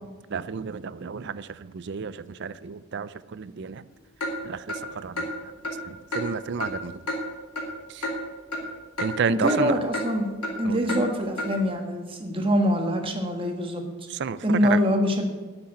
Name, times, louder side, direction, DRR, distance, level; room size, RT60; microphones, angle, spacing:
voice 1, 0.3-3.8 4.4-5.3 5.9-7.0 7.9-8.0 9.0-9.7 10.6-10.8 14.1-14.8, right 6 dB, 50° right, 16 dB, 0.4 m, -31 dB
Clock, 4.2-4.3 4.7-4.8 5.2-5.3 5.6-5.8 6.1-6.2 6.6-6.7 7.1-7.2 7.6-7.7 8.0-8.2 8.5-8.6 9.0-9.1 9.5-9.6 9.9-10.1 10.4-10.5 10.9-11.0 11.4-11.5, left 1 dB, 85° left, 2.5 m, -29 dB
voice 2, 9.3-10.3 10.6-13.8 14.4-15.3, equal, 25° right, 3 dB, 1.4 m, -24 dB
9.6 x 6.8 x 9.0 m, 1.3 s
head